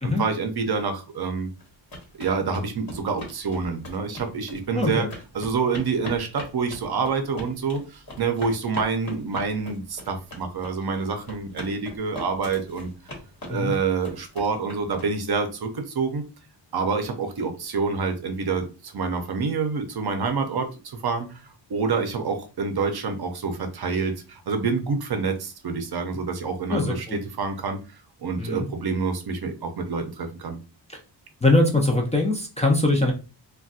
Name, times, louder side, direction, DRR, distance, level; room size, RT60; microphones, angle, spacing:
voice 1, 0.0-1.5 2.1-5.1 5.3-12.9 13.5-16.2 16.7-27.8 28.2-30.6, right 4 dB, 55° right, 6 dB, 0.6 m, -27 dB
sound 1, 1.6-15.4, left 1 dB, 50° left, 1.2 m, -40 dB
voice 2, 4.7-5.1 13.5-13.7 26.7-27.2 28.4-28.7 30.9-31.0 31.4-33.1, left 2 dB, 15° left, 0 dB, 0.4 m, -22 dB
3.9 x 2.3 x 2.4 m, 0.32 s
wide cardioid pair, 155°, 46 cm